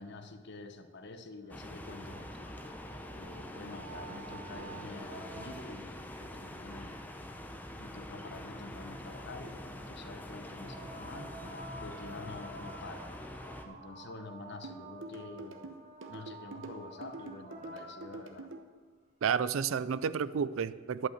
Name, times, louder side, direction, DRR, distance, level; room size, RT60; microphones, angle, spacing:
voice 1, 0.0-2.6 3.1-7.0 7.8-13.1 13.6-15.7 16.1-18.5, left 3 dB, 60° left, 8 dB, 0.9 m, -47 dB
sound 1, 1.3-6.0 10.4-18.6 19.9-20.0, right 2 dB, 40° right, 1.6 m, -51 dB
sound 2, 1.5-13.6, left 1 dB, 10° left, 0.8 m, -45 dB
sound 3, 14.6-18.6, right 3 dB, 70° right, 0.9 m, -45 dB
voice 2, 19.2-21.1, right 6 dB, 90° right, 17 dB, 0.4 m, -31 dB
11.5 x 5.7 x 7.9 m, 1.5 s
head